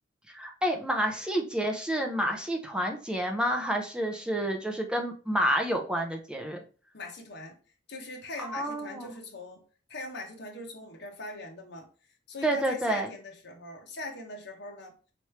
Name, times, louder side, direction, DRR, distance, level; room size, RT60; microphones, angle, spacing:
voice 1, 0.3-6.6 8.4-9.1 12.4-13.1, right 1 dB, 5° right, 3 dB, 0.7 m, -29 dB
voice 2, 6.9-7.6 7.9-9.6 9.9-11.9 12.3-14.9, left 2 dB, 65° left, 1 dB, 1.0 m, -41 dB
4.3 x 3.2 x 3.1 m, 0.38 s
head